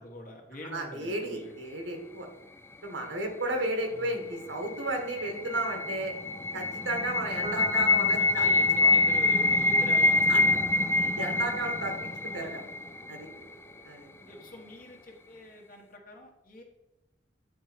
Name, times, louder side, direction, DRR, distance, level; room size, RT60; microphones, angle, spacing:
voice 1, 0.0-1.6 3.9-4.1 7.7-7.8 8.2-10.5 12.3-12.4 14.2-16.6, left 1 dB, 50° left, 2 dB, 1.5 m, -45 dB
voice 2, 0.7-2.3 2.8-6.1 6.5-8.9 10.3-10.4 11.0-12.6 13.1-13.3 13.8-14.1, right 2 dB, 85° right, 3 dB, 1.8 m, -33 dB
sound 1, 4.4-13.4, left 2 dB, 15° left, 0.3 m, -26 dB
Piano, 7.4-14.1, right 5 dB, 30° right, 1.1 m, -47 dB
9.1 x 4.2 x 4.2 m, 0.96 s
head